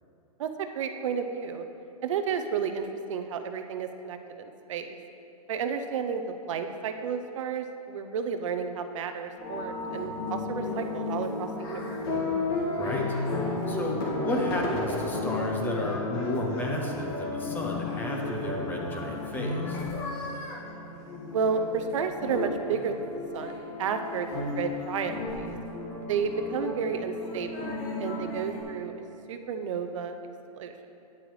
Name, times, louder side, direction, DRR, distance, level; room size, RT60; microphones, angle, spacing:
voice 1, 0.4-1.6 2.0-5.0 5.5-12.0 21.3-24.3 24.6-25.6 26.1-27.7 28.0-28.9 29.3-30.2 30.5-30.7, right 6 dB, 60° right, 7 dB, 0.6 m, -32 dB
sound 1, 9.4-28.6, left 2 dB, 40° left, 1.8 m, -33 dB
voice 2, 12.8-13.2 13.7-19.8, left 1 dB, 10° left, 0 dB, 0.7 m, -32 dB
9.8 x 7.8 x 3.2 m, 2.9 s
hypercardioid pair, 155°, 19 cm